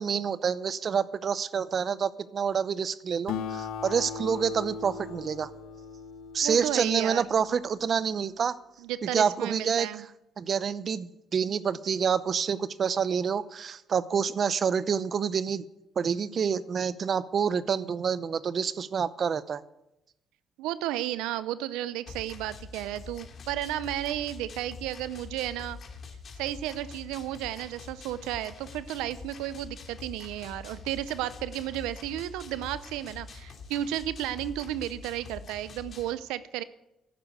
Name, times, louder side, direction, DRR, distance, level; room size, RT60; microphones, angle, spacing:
voice 1, 0.0-5.5 6.3-8.5 9.1-9.9 10.4-15.7 16.0-19.6, right 7 dB, 50° right, 16 dB, 0.7 m, -28 dB
Acoustic guitar, 3.3-8.1, left 6 dB, 80° left, 1.1 m, -39 dB
voice 2, 6.4-7.2 8.8-10.0 20.6-25.8 26.4-36.6, right 13 dB, 90° right, 15 dB, 0.6 m, -33 dB
sound 1, 22.1-36.1, left 4 dB, 55° left, 2.7 m, -45 dB
11.5 x 9.8 x 8.0 m, 0.89 s
supercardioid pair, 75°, 0 cm